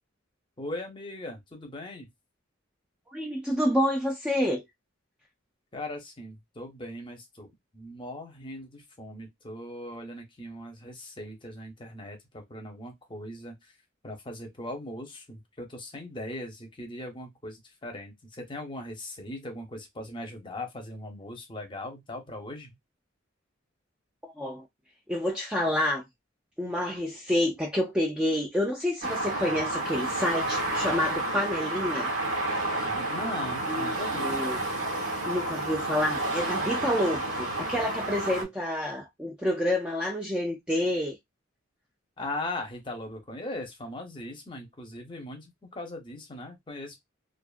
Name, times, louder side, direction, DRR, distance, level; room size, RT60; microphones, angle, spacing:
voice 1, 0.6-2.1 5.7-13.7 14.0-22.8 32.8-34.4 42.2-47.0, left 1 dB, 25° left, 0.7 m, -39 dB
voice 2, 3.1-4.6 24.2-24.7 25.1-26.0 26.6-32.1 33.7-34.6 35.3-41.2, left 1 dB, 5° right, 0.3 m, -28 dB
sound 1, 29.0-38.4, right 1 dB, 85° right, 1.1 m, -30 dB
2.4 x 2.4 x 2.3 m
head